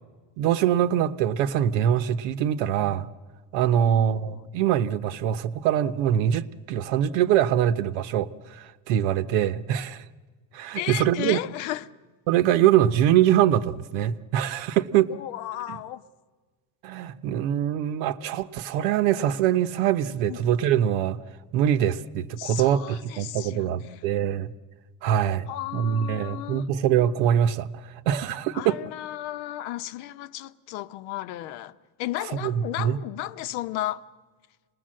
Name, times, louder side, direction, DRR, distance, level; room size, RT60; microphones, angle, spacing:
voice 1, 0.4-3.1 3.5-10.0 10.5-11.4 12.3-15.1 15.7-15.8 16.8-21.2 21.5-24.5 25.0-28.8 32.4-33.0, right 10 dB, 80° right, 1.0 m, -23 dB
voice 2, 3.7-4.4 10.7-11.9 15.1-16.0 20.3-20.4 22.4-24.0 25.5-26.7 28.5-31.7 32.0-34.0, left 14 dB, 70° left, 0.9 m, -34 dB
27.5 x 20.0 x 7.6 m
cardioid pair, 180°, 41 cm